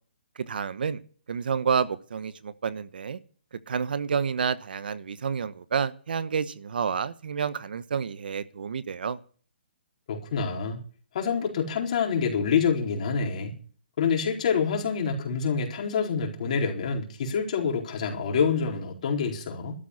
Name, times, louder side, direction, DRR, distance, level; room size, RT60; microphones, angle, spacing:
voice 1, 0.5-1.0 1.3-3.2 3.7-9.2, right 6 dB, 60° right, 1.1 m, -29 dB
voice 2, 10.1-10.8 11.1-13.5 14.0-19.7, left 6 dB, 40° left, 4.5 m, -27 dB
13.0 x 8.4 x 9.8 m
hypercardioid pair, 165°, 6 cm